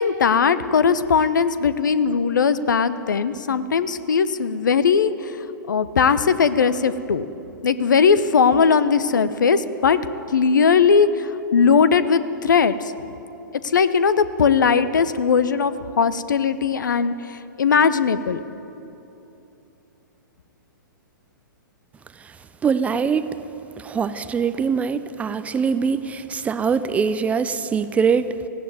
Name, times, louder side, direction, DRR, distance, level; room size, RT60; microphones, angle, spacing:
voice 1, 0.0-5.4 5.7-7.3 7.6-10.0 10.3-12.9 13.6-18.4, left 6 dB, 65° left, 14 dB, 1.0 m, -19 dB
voice 2, 22.6-23.4 23.8-28.3, right 6 dB, 10° right, 13 dB, 0.6 m, -23 dB
17.5 x 16.0 x 9.4 m, 3.0 s
figure-of-eight pair, 110°, 11 cm